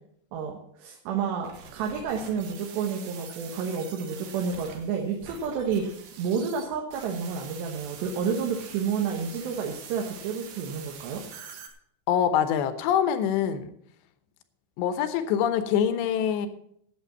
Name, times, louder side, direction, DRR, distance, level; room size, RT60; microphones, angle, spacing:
voice 1, 0.3-5.8 6.2-11.3, right 6 dB, 80° right, 1 dB, 3.4 m, -30 dB
sound 1, 1.4-11.7, right 6 dB, 65° right, 2.9 m, -45 dB
voice 2, 12.1-13.7 14.8-16.5, left 9 dB, 85° left, 9 dB, 3.2 m, -24 dB
11.0 x 8.0 x 7.1 m, 0.70 s
omnidirectional pair, 4.9 m